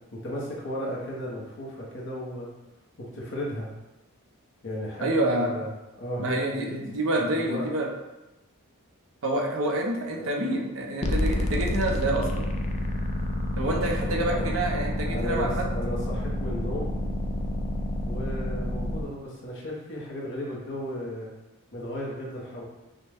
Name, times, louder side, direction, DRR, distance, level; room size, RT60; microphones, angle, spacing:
voice 1, 0.1-2.5 3.0-3.7 4.6-5.7 6.0-6.8 7.3-7.7 10.2-10.3 13.7-14.5 15.1-16.9 18.0-21.3 21.7-22.6, equal, 55° left, -4 dB, 1.0 m, -35 dB
voice 2, 5.0-5.5 6.2-7.9 9.2-12.5 13.6-15.7, right 1 dB, 65° right, 0 dB, 0.8 m, -27 dB
sound 1, 11.0-19.0, left 1 dB, 30° left, 0.4 m, -29 dB
5.5 x 2.2 x 3.5 m, 1.0 s
head